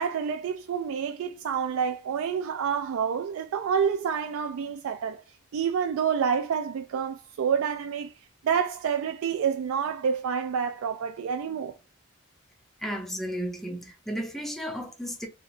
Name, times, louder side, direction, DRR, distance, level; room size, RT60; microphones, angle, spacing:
voice 1, 0.0-5.2 5.5-8.1 8.4-11.7, right 7 dB, 80° right, 0.3 m, -28 dB
voice 2, 12.8-15.3, equal, ahead, 0.4 m, -33 dB
3.0 x 3.0 x 2.5 m
head